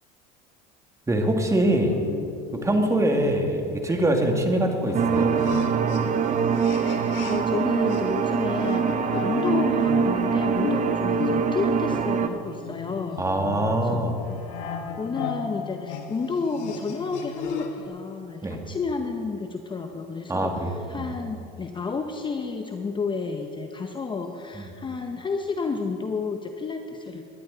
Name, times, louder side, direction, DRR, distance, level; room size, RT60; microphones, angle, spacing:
voice 1, 1.1-2.0 2.6-5.3 13.2-14.2 18.4-18.6 20.3-21.1 24.6-24.7, right 1 dB, 15° right, 3 dB, 2.1 m, -24 dB
sound 1, 1.9-7.6 7.9-17.9, left 8 dB, 60° left, 1.3 m, -35 dB
sound 2, 4.9-12.3, right 7 dB, 35° right, 0.9 m, -24 dB
voice 2, 7.3-13.2 13.8-13.9 15.0-27.2, left 4 dB, 20° left, 5 dB, 0.8 m, -31 dB
19.5 x 11.5 x 3.9 m, 2.6 s
supercardioid pair, 95°, 21 cm